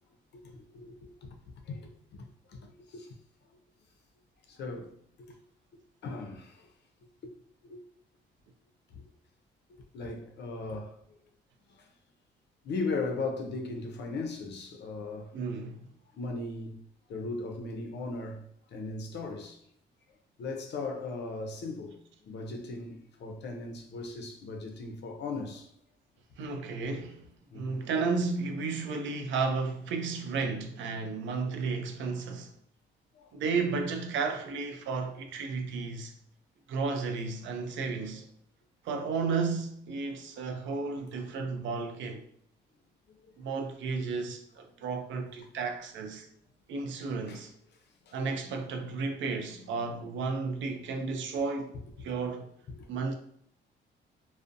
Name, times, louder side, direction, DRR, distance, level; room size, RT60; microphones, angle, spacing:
voice 1, 0.3-1.4 1.7-3.1 4.5-4.9 6.0-6.7 7.2-7.3 7.7-7.8 8.9-9.0 9.9-11.2 11.7-11.9 12.6-15.3 16.2-16.8 17.1-18.4 18.7-19.6 20.4-22.0 22.2-25.7 27.5-27.8 33.1-33.3 43.3-43.4 45.4-45.5 47.3-47.4 48.1-48.2 52.8-52.9, left 3 dB, 60° left, 0.5 m, -38 dB
voice 2, 15.3-15.9 26.4-27.2 27.5-32.5 33.3-36.1 36.7-38.2 38.8-42.3 43.4-46.3 46.7-47.5 48.1-52.5 52.9-53.1, right 4 dB, 70° right, 0.4 m, -33 dB
2.5 x 2.0 x 2.5 m
cardioid pair, 90°, 20 cm